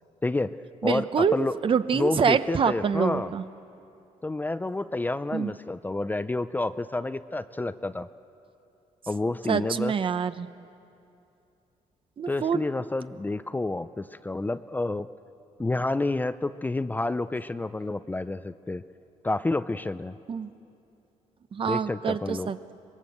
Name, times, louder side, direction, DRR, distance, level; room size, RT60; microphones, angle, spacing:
voice 1, 0.2-0.6 0.8-1.6 1.9-3.3 4.2-8.1 9.1-9.9 12.3-15.1 15.6-18.8 19.2-20.2 21.7-22.5, left 2 dB, 15° left, 12 dB, 0.5 m, -29 dB
voice 2, 0.8-3.4 5.3-5.5 9.5-10.5 12.2-12.6 20.3-20.5 21.5-22.7, right 6 dB, 40° right, 12 dB, 0.8 m, -26 dB
24.5 x 20.0 x 7.9 m, 2.7 s
cardioid pair, 105°, 13 cm